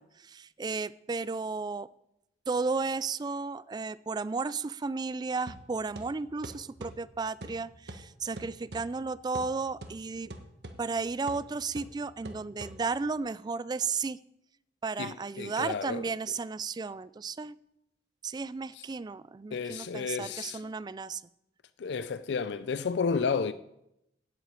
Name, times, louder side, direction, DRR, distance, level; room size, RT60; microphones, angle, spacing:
voice 1, 0.0-1.9 2.5-10.3 10.8-14.2 14.8-17.6 18.2-21.2, right 4 dB, 25° right, 0.3 m, -34 dB
sound 1, 5.5-13.2, right 1 dB, 65° right, 1.2 m, -47 dB
voice 2, 15.0-16.1 18.7-18.8 19.5-20.6 21.8-23.5, left 5 dB, 70° left, 0.4 m, -32 dB
8.1 x 7.7 x 8.9 m
head